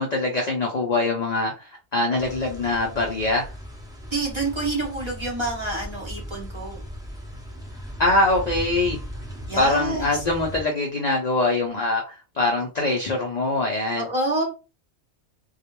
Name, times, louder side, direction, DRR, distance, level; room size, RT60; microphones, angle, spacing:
voice 1, 0.0-3.5 8.0-9.0 9.6-14.1, left 2 dB, 70° left, 1 dB, 0.4 m, -23 dB
sound 1, 2.2-10.6, equal, 5° right, 0.4 m, -37 dB
voice 2, 4.1-6.8 9.5-10.2 14.0-14.4, right 2 dB, 25° right, -2 dB, 0.7 m, -28 dB
2.3 x 2.0 x 2.9 m, 0.32 s
omnidirectional pair, 1.3 m